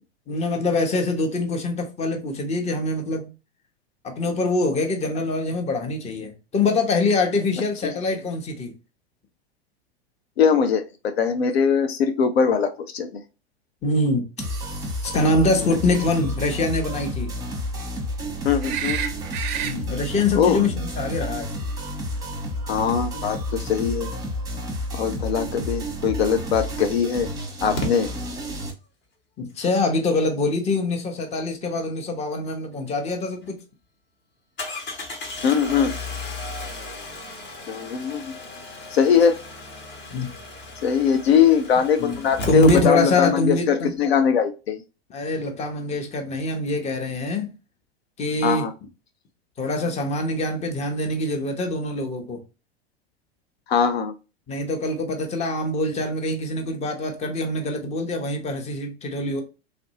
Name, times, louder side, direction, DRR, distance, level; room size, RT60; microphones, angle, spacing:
voice 1, 0.3-3.3 4.0-8.7 13.8-14.2 15.0-17.3 19.6-21.5 24.5-24.6 29.4-33.6 40.1-40.3 42.0-43.9 45.1-47.5 48.2-48.7 49.6-52.4 54.5-59.4, left 2 dB, 20° left, 0.7 m, -24 dB
voice 2, 10.4-13.2 18.4-19.0 20.4-20.6 22.7-24.1 24.9-27.3 27.6-28.1 35.4-35.9 37.7-38.3 38.9-39.4 40.8-44.8 48.4-48.7 53.7-54.1, left 7 dB, 70° left, 0.5 m, -21 dB
sound 1, 14.4-28.7, equal, 10° right, 0.9 m, -31 dB
sound 2, 18.6-19.7 22.6-22.7, right 9 dB, 30° right, 0.4 m, -29 dB
Engine starting, 26.3-26.4 27.8-27.9 33.0-33.1 33.4-33.5 34.6-43.4 43.7-43.8 44.0-44.1, left 1 dB, 35° left, 1.1 m, -34 dB
3.1 x 2.5 x 2.8 m
figure-of-eight pair, 90°, 32 cm